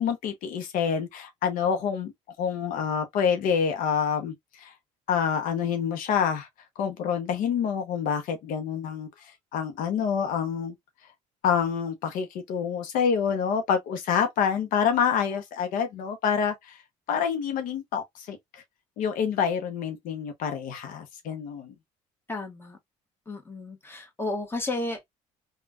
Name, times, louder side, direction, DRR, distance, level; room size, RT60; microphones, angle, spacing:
voice 1, 0.0-2.1 2.4-4.7 5.1-6.5 6.8-10.7 11.4-16.8 17.1-18.6 19.0-21.7, left 7 dB, 70° left, 0.7 m, -27 dB
voice 2, 22.3-22.8 23.3-25.1, left 2 dB, 15° left, 1.2 m, -33 dB
3.3 x 2.3 x 2.3 m
cardioid pair, 100°, 15 cm